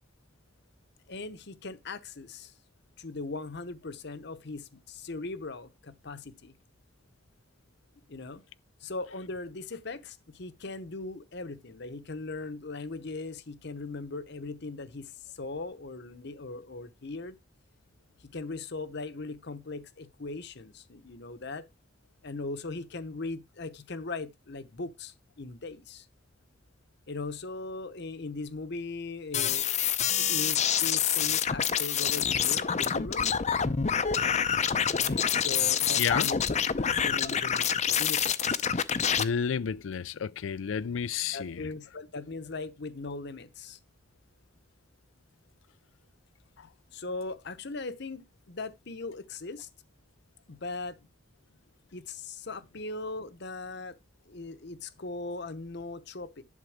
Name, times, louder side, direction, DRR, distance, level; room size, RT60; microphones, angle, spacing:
voice 1, 1.1-2.5 3.0-6.5 8.1-8.4 8.8-17.4 18.2-21.7 22.2-26.1 27.1-29.9 30.1-33.3 35.0-36.5 36.8-38.7 41.3-43.8 46.9-49.7 50.5-51.1 51.9-54.0 54.3-56.4, left 3 dB, 60° left, 0.9 m, -39 dB
sound 1, 29.3-39.2, left 8 dB, 35° left, 0.6 m, -27 dB
voice 2, 36.0-36.3 39.2-41.7, left 7 dB, 80° left, 0.4 m, -31 dB
11.0 x 3.9 x 6.4 m
head